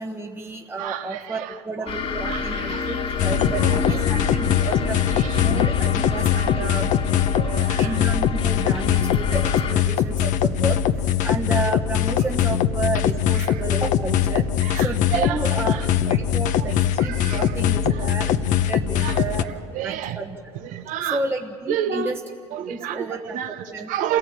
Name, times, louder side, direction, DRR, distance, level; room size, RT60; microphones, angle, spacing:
voice 1, 0.0-5.0 5.4-6.9 7.8-10.8 11.2-14.5 14.8-19.5 19.7-20.4 21.1-22.2 22.7-23.4 23.7-24.2, right 3 dB, 15° right, 1 dB, 1.3 m, -31 dB
voice 2, 0.8-1.9 2.2-3.0 3.4-4.4 5.1-5.4 6.6-6.7 7.3-8.0 13.3-13.6 14.6-15.9 16.6-17.5 17.8-18.1 19.0-20.2 20.5-21.2 21.7-22.2 22.5-24.2, right 9 dB, 70° right, 9 dB, 1.4 m, -31 dB
sound 1, 1.9-9.7, left 5 dB, 45° left, 1.8 m, -28 dB
sound 2, 3.2-19.4, left 10 dB, 65° left, 0.9 m, -22 dB
27.0 x 16.5 x 8.9 m, 2.3 s
supercardioid pair, 80°, 14 cm